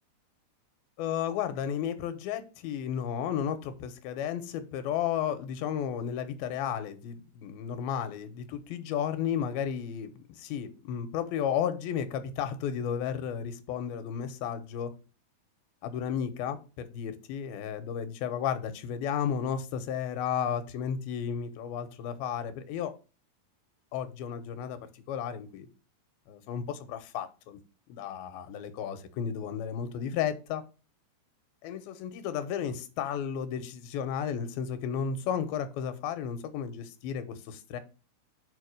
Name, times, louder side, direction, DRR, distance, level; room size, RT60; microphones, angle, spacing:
voice 1, 1.0-15.0 15.8-22.9 23.9-25.7 26.3-27.6 27.9-30.6 31.6-37.8, left 8 dB, 80° left, 2.6 m, -33 dB
5.2 x 5.2 x 6.3 m
omnidirectional pair, 4.5 m